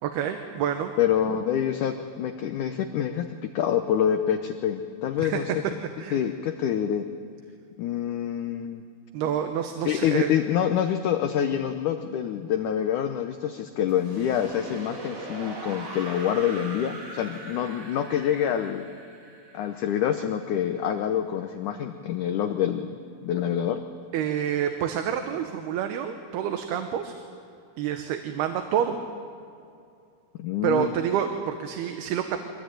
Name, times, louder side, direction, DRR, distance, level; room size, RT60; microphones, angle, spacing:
voice 1, 0.0-0.9 5.2-5.4 6.0-6.2 9.1-10.3 24.1-27.1 27.8-29.0 30.6-32.5, right 9 dB, 80° right, 6 dB, 3.0 m, -28 dB
voice 2, 1.0-5.5 6.1-7.1 7.8-8.8 9.9-18.9 19.5-23.0 23.2-23.8 30.4-30.9, left 9 dB, 75° left, 7 dB, 1.9 m, -26 dB
sound 1, 13.9-20.8, right 2 dB, 30° right, 3.0 m, -41 dB
24.5 x 20.0 x 9.1 m, 2.4 s
omnidirectional pair, 4.7 m